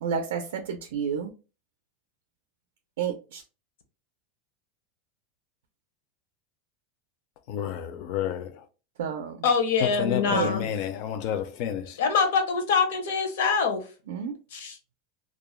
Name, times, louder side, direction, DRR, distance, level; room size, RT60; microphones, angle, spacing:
voice 1, 0.0-1.3 3.0-3.4 9.0-9.4 10.3-10.5 14.1-14.3, right 7 dB, 90° right, 0.4 m, -30 dB
voice 2, 7.5-8.6 9.8-12.0, left 9 dB, 40° left, 0.4 m, -30 dB
voice 3, 9.4-10.7 12.0-13.8 14.5-14.8, left 5 dB, 80° left, 0.6 m, -24 dB
2.3 x 2.1 x 3.0 m
supercardioid pair, 175°, 0 cm